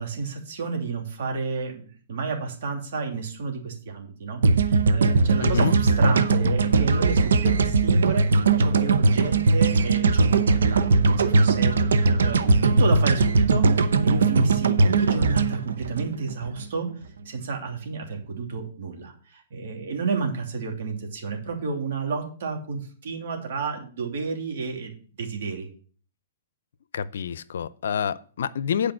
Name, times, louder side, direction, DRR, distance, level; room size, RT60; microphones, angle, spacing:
voice 1, 0.0-8.3 8.6-16.9 17.2-25.7, right 5 dB, 65° right, 2 dB, 2.9 m, -31 dB
sound 1, 4.4-16.6, right 3 dB, 80° right, 0.9 m, -20 dB
voice 2, 5.4-5.7 26.9-28.9, left 8 dB, 75° left, 18 dB, 0.6 m, -27 dB
8.6 x 5.0 x 7.6 m, 0.42 s
hypercardioid pair, 130°, 0 cm